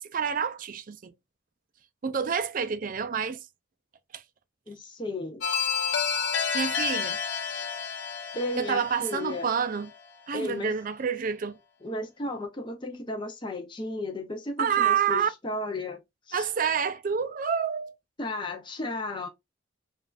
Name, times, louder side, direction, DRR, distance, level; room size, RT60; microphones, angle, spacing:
voice 1, 0.1-1.1 2.0-3.4 4.1-4.2 6.5-7.2 8.6-9.9 10.3-11.6 14.6-15.3 16.3-17.9, right 7 dB, 45° right, 0.4 m, -28 dB
voice 2, 4.7-5.4 7.5-7.7 8.3-9.5 10.3-10.7 11.8-16.0 16.3-16.5 18.2-19.3, left 2 dB, 25° left, 0.6 m, -34 dB
sound 1, 5.4-10.2, left 6 dB, 70° left, 0.8 m, -30 dB
5.3 x 2.4 x 2.4 m
head